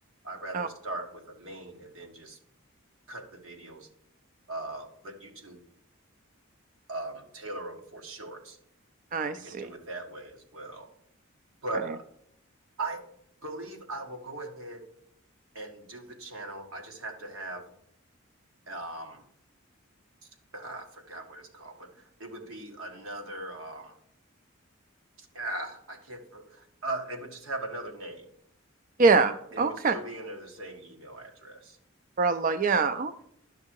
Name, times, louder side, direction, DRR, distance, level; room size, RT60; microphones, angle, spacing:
voice 1, 0.2-2.4 3.1-3.9 4.5-5.6 6.9-8.6 9.3-10.9 11.6-12.0 12.8-13.0 13.4-14.8 15.5-17.6 18.7-19.2 20.2-24.0 25.2-28.3 29.5-31.8, right 2 dB, 80° right, 3 dB, 1.8 m, -39 dB
voice 2, 9.1-9.7 29.0-29.9 32.2-33.3, right 4 dB, 40° right, 10 dB, 0.4 m, -24 dB
11.5 x 5.8 x 4.6 m, 0.72 s
head